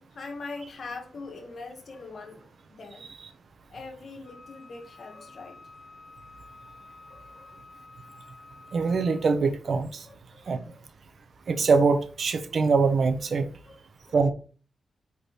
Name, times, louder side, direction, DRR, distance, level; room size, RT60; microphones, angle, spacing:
voice 1, 0.0-3.1 3.7-5.6 7.1-7.5 10.0-10.8 13.6-13.8 14.0-14.2, left 3 dB, 55° left, 1.7 m, -42 dB
Wind instrument woodwind instrument, 4.2-9.4, left 3 dB, 30° left, 4.2 m, -50 dB
voice 2, 8.7-10.0 10.5-10.6 11.5-13.4 14.1-14.3, right 4 dB, 60° right, 1.3 m, -23 dB
8.5 x 4.3 x 4.3 m
wide cardioid pair, 105°, 0 cm